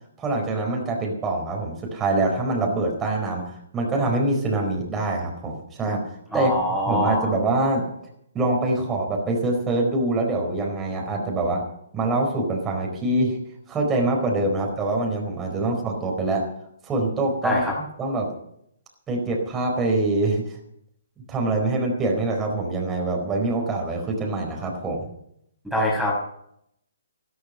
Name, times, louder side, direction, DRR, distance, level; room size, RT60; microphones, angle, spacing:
voice 1, 0.2-6.0 6.3-6.5 6.9-7.8 8.3-11.6 11.9-13.4 13.7-16.5 16.8-18.3 19.1-20.6 21.3-25.1, right 2 dB, 15° right, 1 dB, 4.4 m, -24 dB
voice 2, 6.3-7.3 15.7-15.8 17.4-17.7 25.6-26.2, left 1 dB, ahead, -5 dB, 5.9 m, -24 dB
14.5 x 14.0 x 5.7 m, 0.73 s
hypercardioid pair, 140°, 0 cm